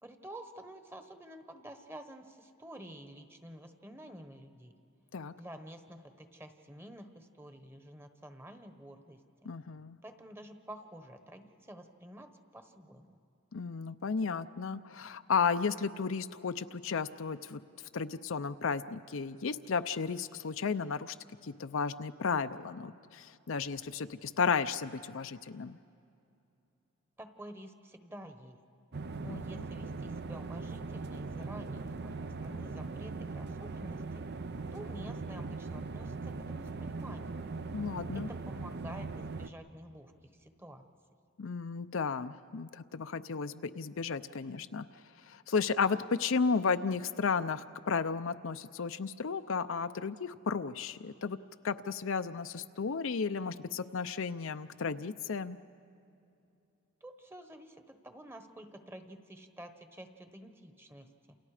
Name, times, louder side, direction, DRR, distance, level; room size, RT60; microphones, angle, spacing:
voice 1, 0.0-4.7 5.4-9.2 10.0-13.2 27.2-28.6 29.2-32.1 32.4-34.0 34.7-36.1 36.5-37.5 38.1-40.1 40.4-40.8 57.0-61.4, right 1 dB, 10° right, 7 dB, 1.2 m, -49 dB
voice 2, 9.4-10.0 13.5-17.6 17.9-21.1 21.4-25.8 29.3-29.7 37.7-38.3 41.4-44.9 45.3-51.4 51.6-55.6, left 5 dB, 65° left, 10 dB, 0.6 m, -33 dB
sound 1, 28.9-39.5, right 3 dB, 50° right, 0.7 m, -40 dB
29.0 x 28.5 x 5.0 m, 2.6 s
head